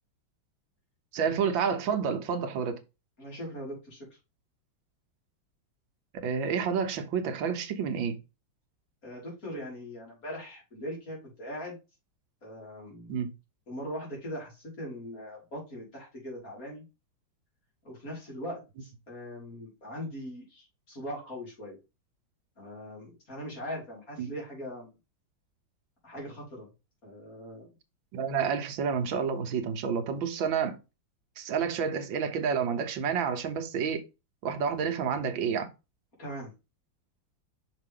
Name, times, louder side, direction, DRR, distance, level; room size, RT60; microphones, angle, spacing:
voice 1, 1.1-2.8 6.2-8.2 13.1-13.3 24.2-24.3 28.1-30.8 31.4-34.0 34.4-35.7, right 6 dB, 80° right, 1.7 m, -29 dB
voice 2, 3.2-4.1 9.0-11.8 12.4-13.1 13.7-16.8 17.8-21.8 22.6-24.9 26.0-26.7 27.0-27.7 36.2-36.5, equal, 45° left, 4.0 m, -40 dB
5.9 x 5.4 x 3.8 m
omnidirectional pair, 2.1 m